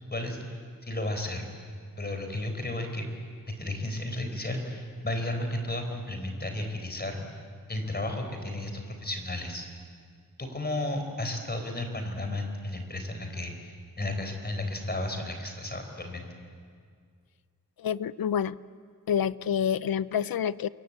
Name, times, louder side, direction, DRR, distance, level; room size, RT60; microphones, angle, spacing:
voice 1, 0.0-1.5 2.0-3.1 3.5-7.3 7.7-9.7 10.4-16.3, left 1 dB, 30° left, 5 dB, 4.3 m, -33 dB
voice 2, 17.8-18.6 19.1-20.7, left 8 dB, 85° left, 17 dB, 0.6 m, -28 dB
28.0 x 23.0 x 8.5 m, 2.1 s
wide cardioid pair, 115°, 34 cm